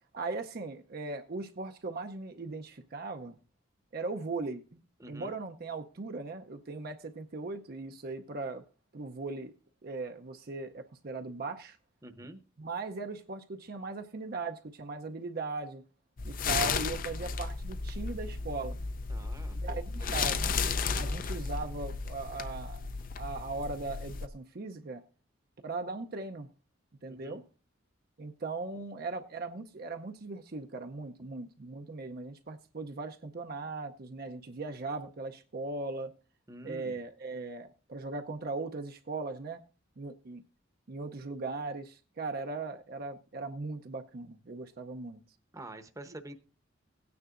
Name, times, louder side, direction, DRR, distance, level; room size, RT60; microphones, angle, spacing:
voice 1, 0.1-3.4 3.9-4.6 5.1-8.6 8.9-9.5 9.8-11.8 12.6-15.8 16.3-18.8 19.5-22.9 23.2-25.0 25.6-26.5 27.0-27.4 28.2-36.1 36.6-39.6 40.0-40.4 40.9-45.2, right 3 dB, 50° right, 0.6 m, -39 dB
voice 2, 5.0-5.3 12.0-12.4 19.1-20.3 27.1-27.4 36.5-37.0 45.5-46.3, right 1 dB, 15° right, 0.9 m, -47 dB
sound 1, 16.2-24.3, left 5 dB, 45° left, 0.5 m, -34 dB
17.0 x 9.4 x 2.5 m
head